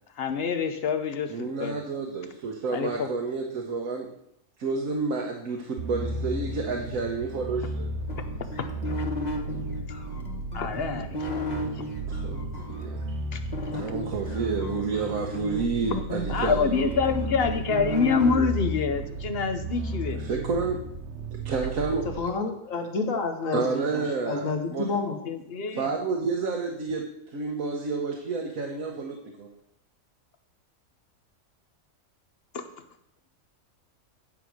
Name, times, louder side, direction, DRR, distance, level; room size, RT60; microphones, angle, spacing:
voice 1, 0.2-1.8 2.7-3.1 8.6-9.0 10.5-11.8 13.3-13.4 16.3-20.2 25.2-25.9 32.5-32.7, left 5 dB, 50° left, 9 dB, 0.9 m, -27 dB
voice 2, 1.3-4.1 4.6-8.0 12.1-13.0 13.7-16.9 20.1-20.9 21.4-22.1 23.5-24.9 25.7-29.5, right 4 dB, 80° right, 0 dB, 1.4 m, -30 dB
sound 1, 5.8-22.3, right 2 dB, 60° right, 1.0 m, -34 dB
sound 2, 8.1-12.8 13.5-18.4, left 1 dB, 30° left, 1.3 m, -34 dB
voice 3, 21.9-25.2, left 4 dB, 70° left, 4 dB, 1.7 m, -30 dB
9.4 x 5.2 x 6.3 m, 0.76 s
omnidirectional pair, 1.4 m